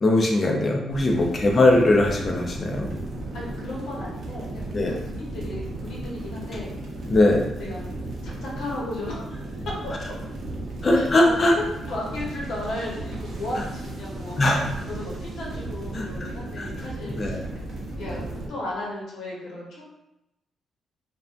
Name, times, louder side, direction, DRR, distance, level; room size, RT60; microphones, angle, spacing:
voice 1, 0.0-2.9 4.7-4.9 7.1-7.4 10.8-11.5 14.4-14.6 15.9-16.3 16.6-16.7 17.1-17.4, left 2 dB, 35° left, 1 dB, 0.4 m, -20 dB
sound 1, 0.9-18.5, right 2 dB, 60° right, 0.6 m, -35 dB
voice 2, 1.0-1.4 3.3-4.6 4.9-6.7 7.5-7.9 8.2-9.4 9.8-9.9 10.9-11.3 11.9-19.8, left 1 dB, 75° left, -4 dB, 0.9 m, -35 dB
2.6 x 2.1 x 2.4 m, 0.89 s
cardioid pair, 115°, 0 cm